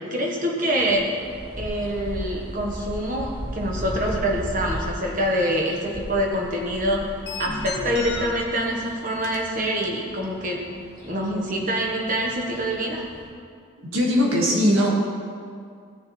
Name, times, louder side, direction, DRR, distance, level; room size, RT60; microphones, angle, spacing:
voice 1, 0.1-1.1 1.5-7.1 7.4-10.6 11.0-13.0, equal, 40° right, -1 dB, 1.5 m, -25 dB
sound 1, 0.7-13.3, equal, 20° right, 1.7 m, -37 dB
sound 2, 3.9-4.4 4.7-4.8 5.9-6.4 6.7-6.8 7.3-8.3 8.6-8.7 9.2-9.4 9.6-9.8 10.2-10.3, left 4 dB, 50° left, 1.6 m, -34 dB
voice 2, 13.9-14.9, equal, 85° right, -3 dB, 2.2 m, -19 dB
16.5 x 7.1 x 3.4 m, 2.3 s
head